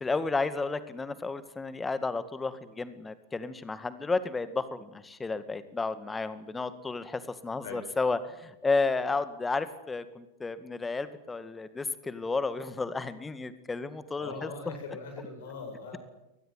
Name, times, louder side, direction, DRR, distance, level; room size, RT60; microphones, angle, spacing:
voice 1, 0.0-14.7, left 3 dB, 10° left, 13 dB, 2.0 m, -32 dB
voice 2, 14.2-16.0, left 4 dB, 60° left, 3 dB, 7.8 m, -41 dB
23.0 x 19.5 x 9.7 m, 0.92 s
figure-of-eight pair, 90°, 0 cm